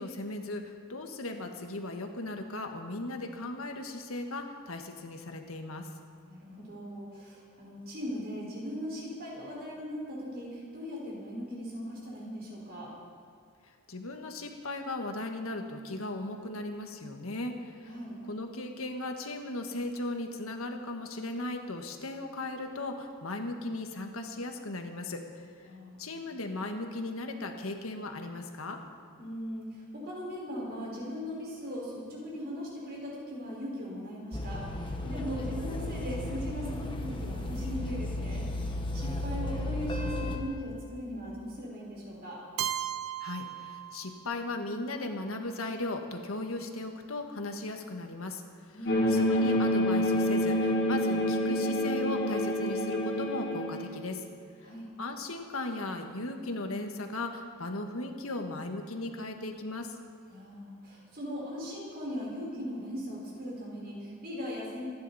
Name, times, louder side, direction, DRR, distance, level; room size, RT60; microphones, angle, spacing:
voice 1, 0.0-5.9 13.9-17.9 18.3-25.5 26.0-28.8 43.2-48.4 49.1-54.2 54.6-54.7 55.0-59.9, left 2 dB, 75° left, 4 dB, 1.6 m, -37 dB
voice 2, 6.2-12.9 17.9-18.2 25.6-26.2 29.2-38.5 38.9-42.4 48.7-49.2 54.6-54.9 60.3-64.8, equal, 45° right, -4 dB, 5.1 m, -39 dB
sound 1, 34.3-40.4, left 1 dB, 25° left, 1.3 m, -34 dB
Keyboard (musical), 42.6-44.5, right 11 dB, 80° right, 0.5 m, -36 dB
sound 2, 48.9-53.9, equal, 50° left, 2.1 m, -27 dB
26.0 x 11.5 x 4.2 m, 2.4 s
head